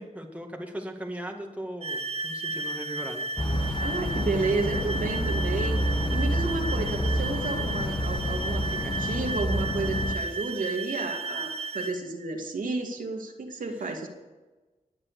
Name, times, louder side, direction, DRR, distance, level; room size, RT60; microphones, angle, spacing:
voice 1, 0.0-3.3, right 1 dB, 10° right, 1 dB, 2.2 m, -38 dB
sound 1, 1.8-12.0, right 3 dB, 45° right, 0.9 m, -34 dB
sound 2, 3.4-10.2, equal, 35° left, 1.4 m, -28 dB
voice 2, 3.8-5.8 6.1-14.1, right 3 dB, 75° right, 1 dB, 2.3 m, -31 dB
20.0 x 7.5 x 6.8 m, 1.2 s
cardioid pair, 70°, 14 cm